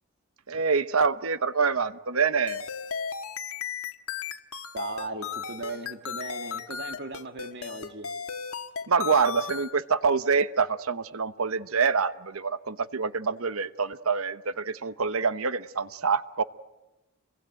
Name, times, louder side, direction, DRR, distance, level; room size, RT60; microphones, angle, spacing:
voice 1, 0.5-2.6 8.9-16.4, right 5 dB, 75° right, 13 dB, 1.0 m, -26 dB
sound 1, 2.5-9.7, left 6 dB, 85° left, 1.6 m, -35 dB
voice 2, 4.7-8.1, right 2 dB, 55° right, 5 dB, 2.0 m, -37 dB
27.5 x 23.0 x 9.0 m, 1.0 s
head